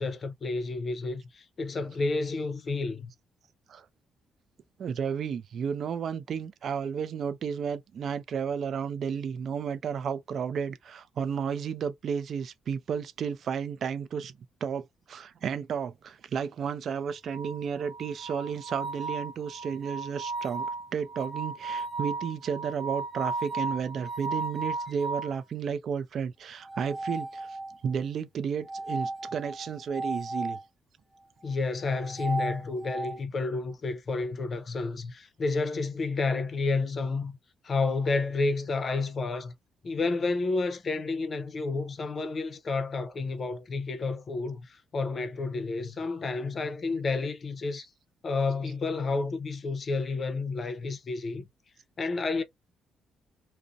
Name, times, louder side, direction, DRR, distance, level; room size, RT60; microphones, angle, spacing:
voice 1, 0.0-3.1 31.4-37.3 37.6-39.5 39.8-47.9 48.2-51.5 52.0-52.4, left 3 dB, 45° left, 0.5 m, -30 dB
voice 2, 4.8-14.3 14.6-27.6 27.8-30.6 47.8-47.9, right 7 dB, 60° right, 0.4 m, -32 dB
sound 1, 17.3-25.4 26.6-27.9 28.7-30.6 31.8-33.2, right 3 dB, 15° right, 0.7 m, -35 dB
2.5 x 2.0 x 2.4 m
cardioid pair, 90°, 0 cm